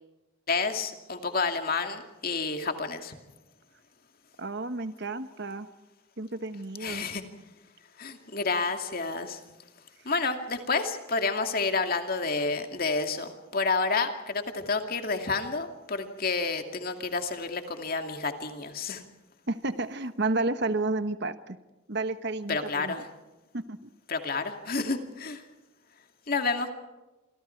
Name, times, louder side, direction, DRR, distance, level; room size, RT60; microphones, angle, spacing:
voice 1, 0.5-3.1 6.8-7.2 8.0-9.4 10.0-19.0 22.5-23.0 24.1-25.4 26.3-26.7, left 4 dB, 45° left, 6 dB, 2.5 m, -30 dB
voice 2, 4.4-5.7 6.2-7.0 19.5-21.6 21.9-23.0 23.5-23.8, right 2 dB, 55° right, 11 dB, 1.2 m, -31 dB
27.5 x 25.5 x 4.6 m, 1.1 s
head